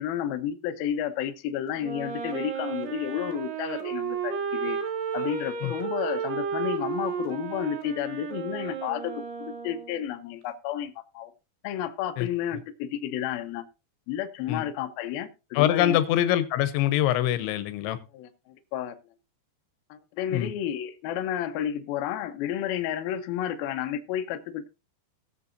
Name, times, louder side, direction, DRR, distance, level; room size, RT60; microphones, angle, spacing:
voice 1, 0.0-4.8 5.1-11.3 11.6-13.6 14.1-16.0 18.1-19.0 19.9-24.7, left 10 dB, 70° left, 2.4 m, -31 dB
Wind instrument woodwind instrument, 1.8-10.1, right 6 dB, 70° right, 3.4 m, -33 dB
voice 2, 15.5-18.0 20.3-20.5, left 12 dB, 90° left, 3.2 m, -24 dB
19.5 x 6.8 x 2.6 m
omnidirectional pair, 5.2 m